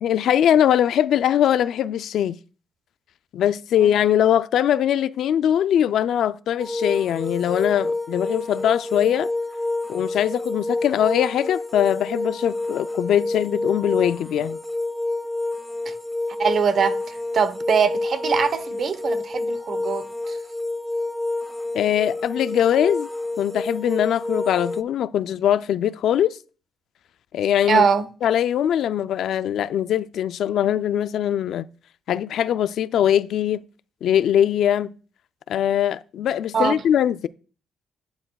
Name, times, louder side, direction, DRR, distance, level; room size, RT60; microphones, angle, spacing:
voice 1, 0.0-2.4 3.3-9.3 9.9-14.6 21.7-23.1 23.4-26.4 27.3-27.9 28.2-31.7 32.1-33.6 34.0-34.9 35.5-37.3, left 10 dB, 75° left, 0.4 m, -21 dB
sound 1, 6.6-24.8, left 2 dB, 5° left, 0.4 m, -28 dB
voice 2, 16.4-17.0 17.3-20.1 27.7-28.1 36.5-36.7, right 6 dB, 55° right, 1.0 m, -22 dB
11.0 x 8.8 x 2.3 m
cardioid pair, 90°, 0 cm